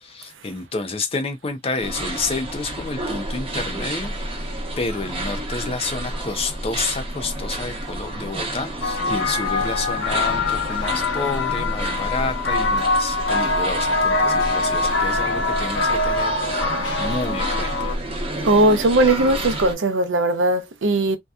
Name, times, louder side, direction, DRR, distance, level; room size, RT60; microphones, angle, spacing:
voice 1, 0.0-4.4 4.8-16.4 17.0-17.9, left 3 dB, 30° left, 0.5 m, -29 dB
sound 1, 1.8-19.8, right 1 dB, 30° right, 0.9 m, -30 dB
sound 2, 8.8-17.9, left 3 dB, 70° left, 0.7 m, -23 dB
voice 2, 18.4-21.2, right 2 dB, 75° right, 0.6 m, -18 dB
2.7 x 2.2 x 2.3 m
head